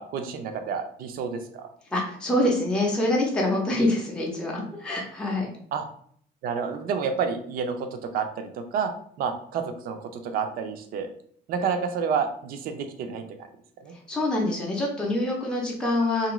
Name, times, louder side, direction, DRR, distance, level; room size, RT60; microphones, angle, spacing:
voice 1, 0.0-1.7 5.7-5.8 6.4-8.9 9.2-11.1 11.5-13.5 13.8-13.9, right 6 dB, 55° right, 7 dB, 0.5 m, -29 dB
voice 2, 1.9-5.5 13.9-16.3, left 1 dB, 5° left, -2 dB, 0.5 m, -25 dB
2.7 x 2.5 x 3.0 m, 0.62 s
cardioid pair, 155°, 17 cm